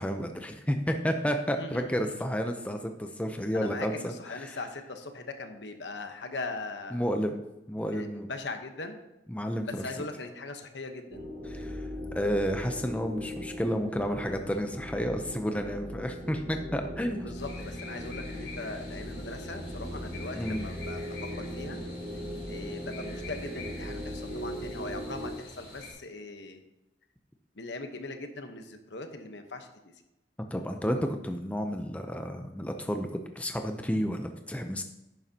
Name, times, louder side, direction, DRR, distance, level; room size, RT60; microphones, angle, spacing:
voice 1, 0.0-4.6 6.9-7.4 7.7-8.3 9.3-9.8 11.5-11.9 12.1-17.3 20.3-20.6 30.5-34.8, equal, 5° left, 5 dB, 0.6 m, -31 dB
voice 2, 1.5-2.1 3.5-7.0 7.9-9.0 9.6-11.3 17.2-21.8 22.5-26.6 27.5-29.9, left 3 dB, 75° left, 6 dB, 1.1 m, -40 dB
sound 1, 11.1-25.3, equal, 30° right, 1.8 m, -39 dB
sound 2, 17.3-25.9, left 3 dB, 60° left, 3.9 m, -47 dB
11.0 x 9.2 x 2.9 m, 0.95 s
head